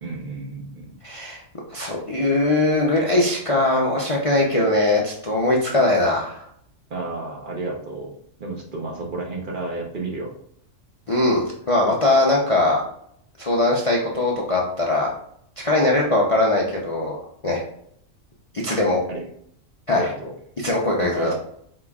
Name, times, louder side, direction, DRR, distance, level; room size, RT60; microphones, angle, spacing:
voice 1, 0.0-0.9 6.9-8.1 8.4-10.3 19.1-19.2 19.9-20.3 21.0-21.3, right 3 dB, 45° right, -1 dB, 0.9 m, -31 dB
voice 2, 1.0-1.4 1.7-6.4 11.1-12.8 13.4-15.1 15.6-17.2 17.4-17.6 18.6-19.0 19.9-20.1 20.6-21.3, left 2 dB, 35° left, -3 dB, 0.5 m, -20 dB
4.9 x 3.8 x 2.3 m, 0.68 s
omnidirectional pair, 1.3 m